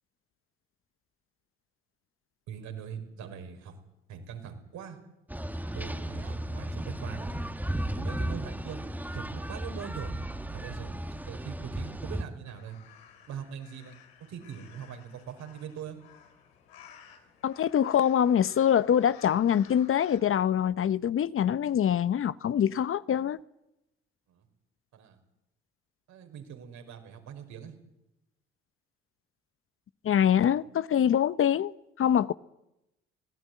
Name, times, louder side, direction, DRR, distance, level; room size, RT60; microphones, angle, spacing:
voice 1, 2.5-3.7 4.1-5.0 5.7-7.4 8.0-10.1 10.5-12.8 13.3-13.9 14.3-16.0 24.3-24.5 24.9-25.2 26.1-27.8, right 8 dB, 65° right, 5.5 m, -42 dB
sound 1, 5.3-12.2, right 1 dB, 5° right, 2.2 m, -35 dB
sound 2, 12.4-20.2, left 8 dB, 85° left, 3.5 m, -55 dB
voice 2, 17.4-23.4 30.0-31.7 32.0-32.3, left 9 dB, 45° left, 0.9 m, -24 dB
25.5 x 18.0 x 9.5 m
hypercardioid pair, 55°, 30 cm